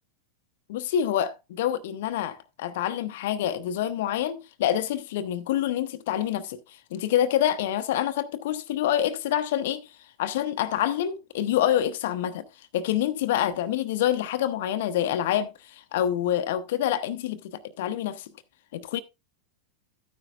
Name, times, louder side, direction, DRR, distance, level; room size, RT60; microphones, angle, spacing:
voice 1, 0.7-6.6 6.9-9.8 10.2-12.4 12.7-18.2 18.7-19.0, left 11 dB, 55° left, 0.9 m, -27 dB
13.0 x 9.8 x 2.4 m
figure-of-eight pair, 90°, 0 cm